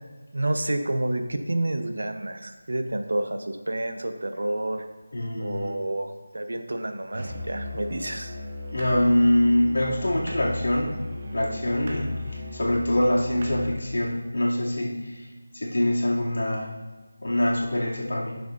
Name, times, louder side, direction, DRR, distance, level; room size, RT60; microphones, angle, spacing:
voice 1, 0.3-4.8 5.4-8.3, right 1 dB, 75° right, 7 dB, 0.9 m, -29 dB
voice 2, 5.1-5.7 8.7-11.0 11.3-12.1 12.5-15.2 15.5-16.7 17.2-18.4, left 1 dB, 80° left, -4 dB, 2.5 m, -24 dB
Musical instrument, 7.1-13.9, left 2 dB, 30° right, 0.9 m, -36 dB
11.5 x 6.9 x 2.6 m, 1.3 s
figure-of-eight pair, 175°, 0 cm